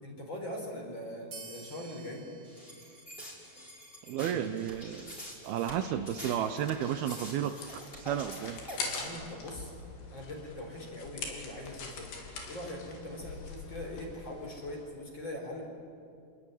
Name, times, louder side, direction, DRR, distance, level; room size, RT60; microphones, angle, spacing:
voice 1, 0.0-2.3 8.8-9.7 10.1-12.0 12.5-15.6, left 1 dB, 30° left, 1 dB, 5.2 m, -41 dB
sound 1, 1.3-4.3, right 4 dB, 40° right, 3.9 m, -52 dB
sound 2, 2.4-9.1, equal, 15° left, 5.6 m, -46 dB
voice 2, 4.1-5.1 5.4-8.6, right 10 dB, 75° right, 9 dB, 2.5 m, -33 dB
sound 3, 6.9-14.8, left 4 dB, 85° left, 5.4 m, -43 dB
28.0 x 21.0 x 9.9 m, 2.4 s
omnidirectional pair, 4.7 m